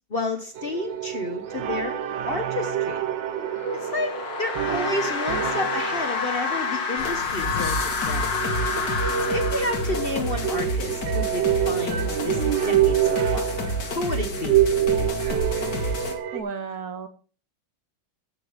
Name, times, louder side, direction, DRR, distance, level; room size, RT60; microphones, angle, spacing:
voice 1, 0.1-2.0 2.3-3.0 3.8-8.3 9.2-13.6 13.9-14.6, left 2 dB, 35° left, 6 dB, 1.1 m, -31 dB
sound 1, 0.6-16.4, right 9 dB, 75° right, 1.7 m, -27 dB
sound 2, 3.3-10.4, left 5 dB, 80° left, 2.2 m, -29 dB
sound 3, 7.0-16.1, equal, 65° left, 2.2 m, -30 dB
voice 2, 16.3-17.1, right 5 dB, 55° right, 9 dB, 1.5 m, -33 dB
14.5 x 6.1 x 5.1 m, 0.39 s
omnidirectional pair, 2.0 m